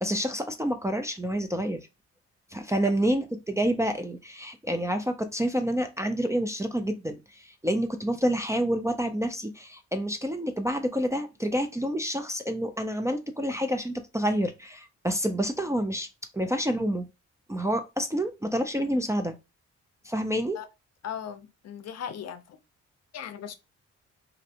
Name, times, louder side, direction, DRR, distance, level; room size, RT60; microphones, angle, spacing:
voice 1, 0.0-1.9 2.5-16.1 16.3-17.1 17.5-19.3 20.1-20.6, equal, 10° right, 0.4 m, -28 dB
voice 2, 21.0-22.6 23.1-23.5, left 8 dB, 60° left, 0.5 m, -38 dB
3.1 x 2.6 x 2.8 m
cardioid pair, 110°, 29 cm